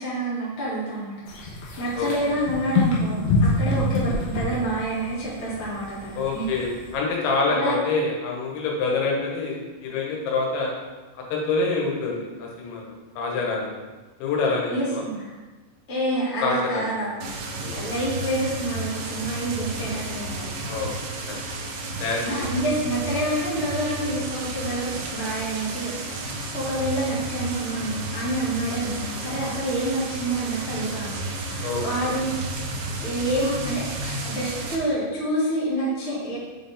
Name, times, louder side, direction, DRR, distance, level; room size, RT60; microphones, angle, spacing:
voice 1, 0.0-6.5 7.5-7.8 14.7-15.4 15.9-17.3 17.7-20.6 22.2-32.5 33.0-36.4, right 1 dB, 50° left, -8 dB, 0.8 m, -28 dB
sound 1, 1.3-6.9, left 2 dB, 70° left, 2.5 m, -26 dB
voice 2, 6.2-10.7 11.3-13.7 14.2-15.0 16.4-16.8 17.6-17.8 20.6-20.9 21.3-21.4 22.0-22.5 31.6-32.2, left 3 dB, 85° left, -1 dB, 3.5 m, -26 dB
sound 2, 17.2-34.8, right 2 dB, 75° right, 2.5 m, -32 dB
7.2 x 4.3 x 3.5 m, 1.2 s
omnidirectional pair, 5.1 m